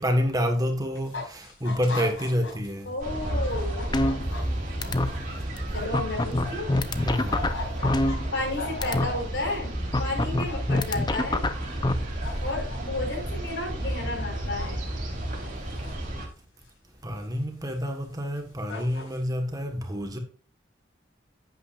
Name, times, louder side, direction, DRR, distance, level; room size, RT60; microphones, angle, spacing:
voice 1, 0.0-2.9 7.0-7.5 17.0-20.2, equal, 20° right, 1.4 m, -28 dB
sound 1, 1.0-2.7 3.0-6.7 7.0-9.5 10.2-10.8 11.1-11.9 12.2-12.8 14.6-14.9 15.2-16.1 16.7-16.8 17.7-17.8 18.4-18.5 18.7-19.2, left 3 dB, 90° left, 5.3 m, -38 dB
voice 2, 2.8-3.9 5.7-6.7 8.3-9.7 10.0-11.4 12.4-14.8, left 2 dB, 65° left, 4.4 m, -32 dB
sound 2, 3.0-16.3, right 1 dB, 45° right, 3.1 m, -32 dB
sound 3, 3.9-4.5 4.8-5.1 5.6-5.7 5.9-8.5 8.8-9.1 9.9-11.9, left 2 dB, 20° left, 0.6 m, -25 dB
10.5 x 8.9 x 2.5 m
head